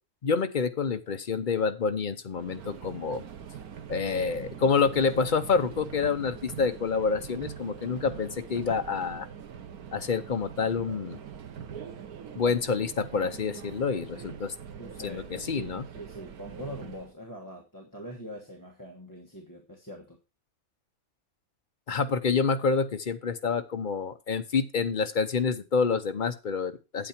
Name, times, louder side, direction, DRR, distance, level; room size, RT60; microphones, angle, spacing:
voice 1, 0.2-3.2 3.9-9.3 9.9-11.2 12.3-14.5 15.0-15.8 21.9-27.1, left 5 dB, 40° left, 9 dB, 0.8 m, -28 dB
Subway metro underground, 2.3-17.1, right 8 dB, 85° right, 1.4 m, -43 dB
voice 2, 14.8-20.2, equal, 15° left, 1 dB, 1.3 m, -43 dB
8.8 x 8.2 x 4.4 m, 0.28 s
omnidirectional pair, 1.5 m